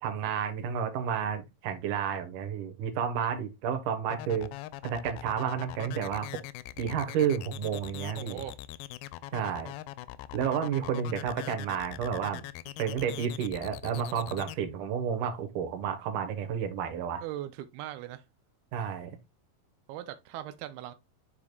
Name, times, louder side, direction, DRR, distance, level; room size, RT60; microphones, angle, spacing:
voice 1, 0.0-4.5 4.8-6.4 6.8-8.4 9.3-9.7 10.3-12.4 12.8-17.2 18.7-19.2, right 8 dB, 65° right, 2.4 m, -31 dB
sound 1, 4.1-14.6, left 16 dB, 85° left, 2.3 m, -41 dB
voice 2, 8.2-8.6 17.2-18.2 19.9-20.9, right 13 dB, 85° right, 2.5 m, -39 dB
8.7 x 4.8 x 2.2 m
omnidirectional pair, 4.4 m